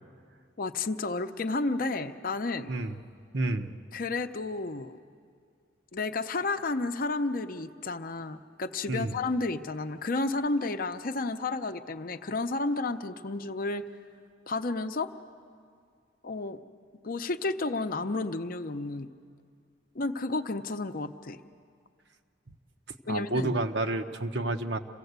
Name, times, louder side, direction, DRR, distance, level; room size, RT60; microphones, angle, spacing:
voice 1, 0.6-2.7 3.9-5.0 5.9-13.9 14.5-15.1 16.2-16.6 17.0-19.1 19.9-21.4 23.1-23.5, left 3 dB, 50° left, 8 dB, 0.7 m, -31 dB
voice 2, 3.3-3.7 8.9-9.1 23.1-24.8, right 2 dB, 65° right, 7 dB, 1.0 m, -29 dB
27.0 x 16.0 x 8.1 m, 2.2 s
head